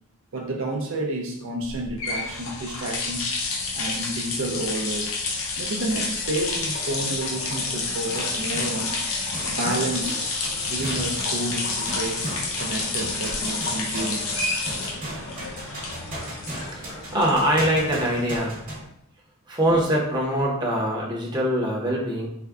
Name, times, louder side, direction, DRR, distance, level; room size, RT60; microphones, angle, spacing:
voice 1, 0.3-3.3 3.7-5.1 5.6-9.0 9.5-10.3 10.6-12.3 12.6-14.6 15.3-16.4, right 1 dB, 65° right, 1 dB, 0.5 m, -30 dB
sound 1, 1.7-18.7, left 3 dB, 65° left, 0.6 m, -29 dB
sound 2, 8.0-9.1 9.3-18.8, right 1 dB, 40° right, 1.0 m, -37 dB
voice 2, 16.7-18.6 19.5-22.3, equal, 20° right, -3 dB, 0.7 m, -23 dB
3.4 x 2.2 x 3.5 m, 0.71 s
head